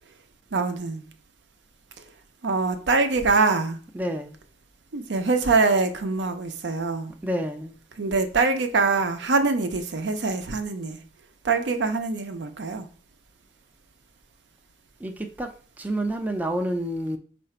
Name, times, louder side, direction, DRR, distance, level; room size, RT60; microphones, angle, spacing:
voice 1, 0.5-1.0 2.4-3.8 4.9-7.1 8.0-11.0 11.4-12.9, right 4 dB, 70° right, 0.6 m, -24 dB
voice 2, 4.0-4.3 7.2-7.7 15.0-15.5 15.8-17.2, right 1 dB, 10° right, 0.4 m, -28 dB
4.8 x 2.5 x 4.3 m
head